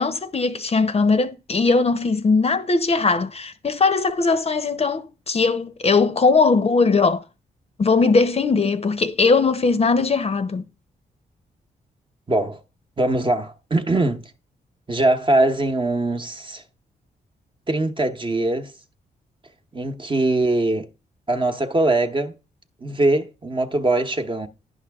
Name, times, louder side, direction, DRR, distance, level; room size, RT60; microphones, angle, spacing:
voice 1, 0.0-7.2 7.8-10.6, left 4 dB, 35° left, 0.7 m, -19 dB
voice 2, 12.3-12.6 13.0-14.3 14.9-16.6 17.7-18.7 19.7-20.9 21.3-22.3 22.8-24.5, right 2 dB, 30° right, 1.0 m, -22 dB
10.0 x 5.7 x 3.5 m
cardioid pair, 65°, 17 cm